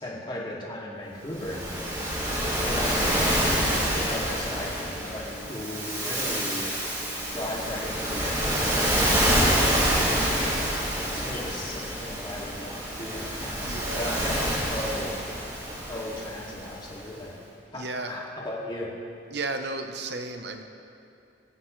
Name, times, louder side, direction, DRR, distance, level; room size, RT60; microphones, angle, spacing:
voice 1, 0.0-3.7 3.9-6.7 7.3-10.4 11.0-15.2 15.9-17.3 17.7-18.9, left 1 dB, 25° left, -5 dB, 2.4 m, -37 dB
Waves surf, 1.3-16.8, equal, 20° right, 2.9 m, -27 dB
sound 1, 1.8-13.9, left 2 dB, 90° left, 3.4 m, -46 dB
voice 2, 13.6-14.3 17.0-17.2 17.8-18.2 19.3-20.6, right 3 dB, 55° right, 6 dB, 0.9 m, -34 dB
26.5 x 9.6 x 3.3 m, 2.7 s
head